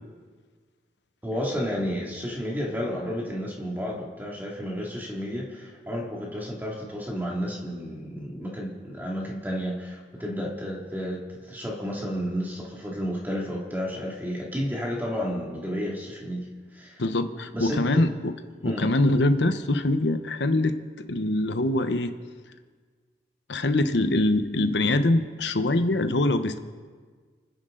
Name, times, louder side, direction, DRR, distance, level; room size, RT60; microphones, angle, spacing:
voice 1, 1.2-16.5 16.7-17.0 17.5-18.0 18.6-18.9, equal, 10° right, -3 dB, 2.3 m, -31 dB
voice 2, 17.0-18.3 18.6-20.8 21.1-22.1 23.5-26.6, left 2 dB, 85° left, 9 dB, 1.0 m, -23 dB
30.0 x 10.5 x 3.9 m, 1.5 s
head